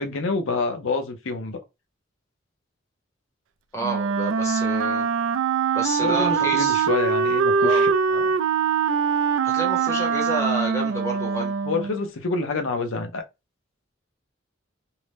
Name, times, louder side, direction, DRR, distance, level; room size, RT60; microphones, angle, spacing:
voice 1, 0.0-1.6 6.0-8.3 11.6-13.2, left 3 dB, 85° left, 0.7 m, -27 dB
voice 2, 3.7-5.1 5.7-6.9 7.6-7.8 9.4-11.5, right 1 dB, 15° left, 0.9 m, -30 dB
Wind instrument woodwind instrument, 3.8-12.1, right 6 dB, 85° right, 0.4 m, -23 dB
2.7 x 2.1 x 3.3 m
head